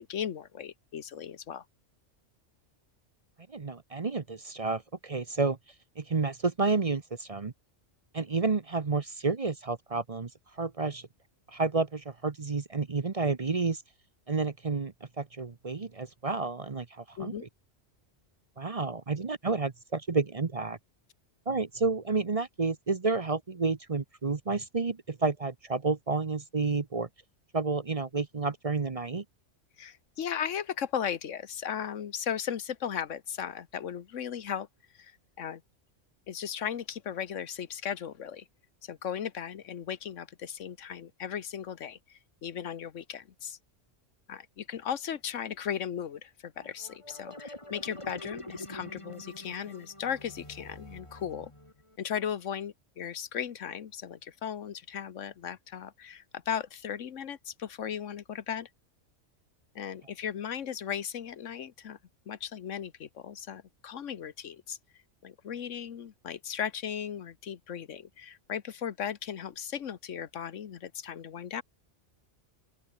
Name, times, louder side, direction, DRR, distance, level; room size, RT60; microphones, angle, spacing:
voice 1, 0.0-1.6 17.2-17.4 29.8-34.7 34.9-35.1 35.4-35.6 36.3-38.4 38.8-43.6 44.3-51.5 52.0-58.7 59.7-62.0 62.3-64.8 65.2-71.6, left 8 dB, 90° left, 1.4 m, -36 dB
voice 2, 3.5-5.6 6.0-7.5 8.1-10.3 10.6-11.1 11.5-13.8 14.3-17.3 18.6-20.8 21.5-27.1 27.5-29.2, right 4 dB, 35° right, 0.8 m, -30 dB
sound 1, 46.6-52.0, left 1 dB, 25° left, 4.7 m, -45 dB
open air
omnidirectional pair, 1.2 m